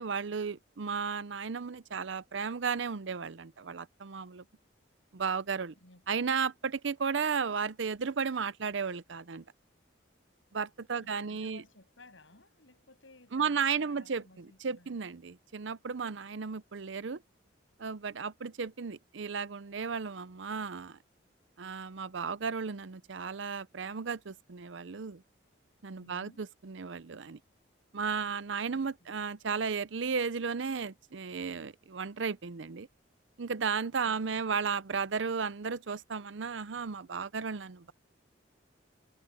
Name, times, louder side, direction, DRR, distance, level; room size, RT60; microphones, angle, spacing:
voice 1, 0.0-4.4 5.1-5.7 6.1-9.4 10.5-11.6 13.3-17.2 17.8-21.0 21.6-25.2 25.8-27.4 27.9-32.9 33.4-37.9, right 5 dB, 75° right, 0.6 m, -34 dB
voice 2, 5.8-6.3 11.0-15.0 26.0-26.5 28.7-29.2 34.0-34.5, left 2 dB, 85° left, 7.6 m, -58 dB
head